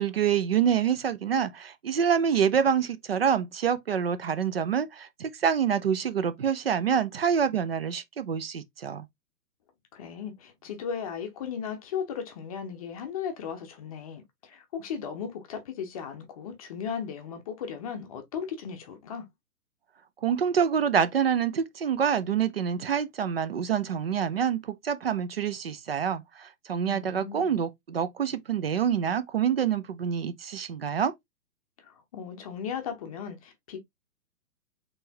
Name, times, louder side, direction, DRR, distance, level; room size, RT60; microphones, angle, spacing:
voice 1, 0.0-9.1 20.2-31.1, right 8 dB, 40° right, 0.4 m, -26 dB
voice 2, 9.9-19.3 26.8-27.4 31.8-33.8, left 7 dB, 25° left, 0.7 m, -36 dB
4.1 x 3.3 x 2.7 m
hypercardioid pair, 145°, 48 cm